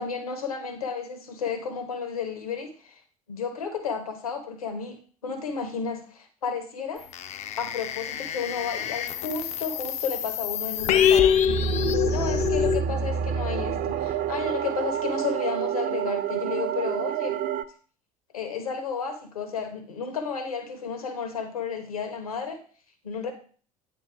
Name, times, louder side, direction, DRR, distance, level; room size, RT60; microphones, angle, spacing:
voice 1, 0.0-2.9 3.3-5.0 5.2-7.0 7.6-11.4 12.1-17.4 18.3-22.6 23.0-23.3, left 6 dB, 80° left, 7 dB, 1.1 m, -32 dB
sound 1, 7.1-12.8, left 8 dB, 40° left, 0.4 m, -25 dB
sound 2, 11.5-17.6, right 8 dB, 45° right, 0.5 m, -28 dB
8.8 x 3.4 x 4.6 m, 0.42 s
figure-of-eight pair, 65°, 18 cm